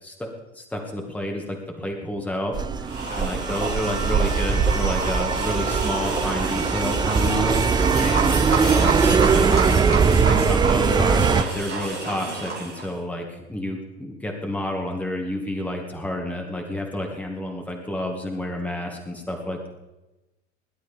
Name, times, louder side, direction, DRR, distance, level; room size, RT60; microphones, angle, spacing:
voice 1, 0.0-7.9 8.6-19.7, left 1 dB, 5° left, 1 dB, 2.1 m, -30 dB
sound 1, 2.5-11.4, right 5 dB, 10° right, 0.5 m, -21 dB
sound 2, 2.8-12.9, right 3 dB, 90° right, 2.8 m, -29 dB
voice 2, 3.0-3.4 7.9-8.9, left 5 dB, 55° left, -1 dB, 3.4 m, -37 dB
22.0 x 11.5 x 3.6 m, 1.0 s
figure-of-eight pair, 75°, 35 cm